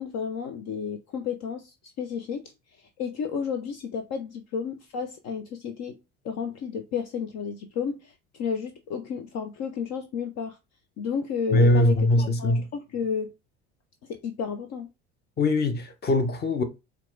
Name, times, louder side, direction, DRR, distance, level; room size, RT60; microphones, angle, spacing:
voice 1, 0.0-2.5 3.0-6.0 6.2-10.6 11.0-13.3 14.0-14.9, left 6 dB, 55° left, 0.7 m, -32 dB
voice 2, 11.5-12.7 15.4-16.6, left 1 dB, 30° left, 0.9 m, -21 dB
4.5 x 2.4 x 3.8 m
hypercardioid pair, 70°, 33 cm